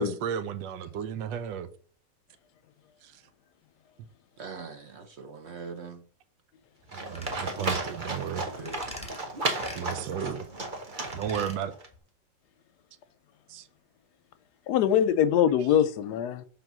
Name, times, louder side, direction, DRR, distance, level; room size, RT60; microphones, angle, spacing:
voice 1, 0.0-1.7 3.0-3.2 6.9-8.5 9.7-10.5 11.1-11.7 13.5-13.7, right 8 dB, 85° right, 1.3 m, -33 dB
voice 2, 4.4-6.0 8.5-8.8 9.6-10.1, right 4 dB, 60° right, 0.7 m, -42 dB
Livestock farm animals working animals, 6.9-11.9, right 2 dB, 30° right, 1.1 m, -34 dB
sound 1, 7.1-7.4 7.6-7.9 8.7-9.2 9.6-9.8 11.0-11.6 11.9-12.0, left 1 dB, 5° left, 1.4 m, -42 dB
voice 3, 14.7-16.4, left 9 dB, 75° left, 1.1 m, -23 dB
6.0 x 3.6 x 5.9 m
omnidirectional pair, 1.9 m